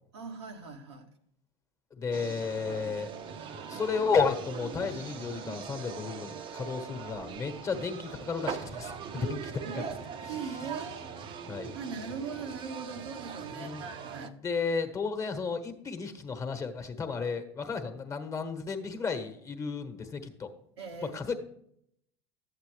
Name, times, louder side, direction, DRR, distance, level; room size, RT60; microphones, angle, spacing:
voice 1, 0.1-1.1 9.1-9.9 10.2-11.1 11.7-14.4 20.8-21.2, right 5 dB, 85° right, 3 dB, 1.3 m, -40 dB
voice 2, 1.9-3.1 3.5-9.9 10.3-10.5 11.5-11.7 13.5-20.5 21.1-21.3, left 5 dB, 25° left, 7 dB, 1.2 m, -33 dB
sound 1, 2.1-14.3, right 6 dB, 40° right, 0.8 m, -41 dB
11.5 x 8.2 x 3.3 m, 0.71 s
hypercardioid pair, 100°, 14 cm